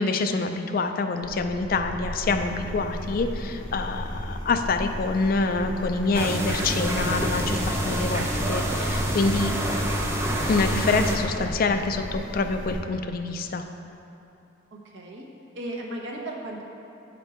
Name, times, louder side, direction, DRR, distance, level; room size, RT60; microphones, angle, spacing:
voice 1, 0.0-9.5 10.5-13.6, left 3 dB, 45° left, 7 dB, 0.3 m, -26 dB
sound 1, 1.2-12.8, equal, 20° left, 0.9 m, -35 dB
sound 2, 6.1-11.2, right 1 dB, 15° right, 0.5 m, -27 dB
voice 2, 14.9-15.2 15.5-16.6, right 1 dB, 65° right, -1 dB, 1.0 m, -35 dB
8.0 x 5.2 x 4.3 m, 2.9 s
head